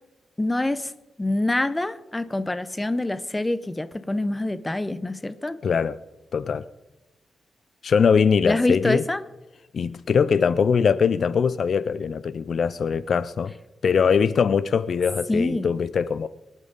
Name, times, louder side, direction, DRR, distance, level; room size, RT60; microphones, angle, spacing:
voice 1, 0.4-0.9 1.2-5.6 8.4-9.2 15.3-15.7, left 2 dB, 10° left, 0.7 m, -25 dB
voice 2, 5.6-6.0 6.3-6.7 7.8-9.0 9.7-13.5 13.8-16.3, left 6 dB, 55° left, 0.4 m, -22 dB
24.0 x 11.0 x 4.0 m
wide cardioid pair, 165°, 0 cm